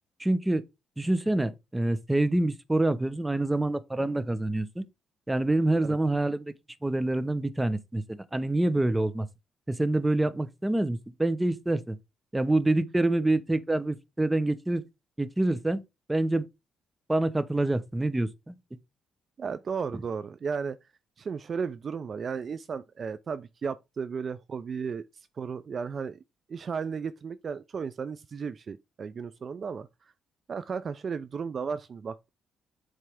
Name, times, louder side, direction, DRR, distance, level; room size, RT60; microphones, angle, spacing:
voice 1, 0.2-0.6 1.0-4.9 5.3-6.5 6.8-9.3 9.7-12.0 12.3-14.8 15.2-15.8 16.1-16.4 17.1-18.5, right 2 dB, 10° right, 0.8 m, -26 dB
voice 2, 19.4-20.8 21.2-25.0 25.4-26.2 26.5-29.9 30.5-32.3, right 6 dB, 45° right, 0.4 m, -34 dB
7.7 x 3.3 x 4.9 m
cardioid pair, 90°, 0 cm